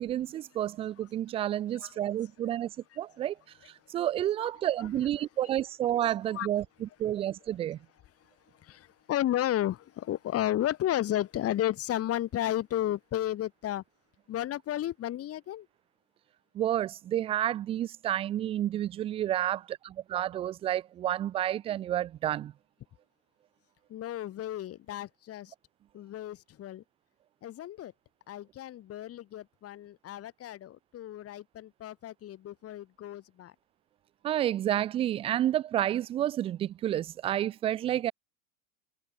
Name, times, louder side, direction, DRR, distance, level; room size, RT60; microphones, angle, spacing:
voice 1, 0.0-2.7 3.0-3.3 3.9-6.6 7.0-7.8 16.6-22.5 34.2-38.1, right 12 dB, 15° right, 0.3 m, -30 dB
voice 2, 1.7-2.6 2.9-3.0 4.4-4.5 4.8-5.1 6.3-6.5 8.2-13.8 14.3-15.7 23.9-25.5 25.9-26.8 27.4-27.9 28.3-33.5, left 12 dB, 35° left, 2.9 m, -33 dB
hypercardioid pair, 95°, 41 cm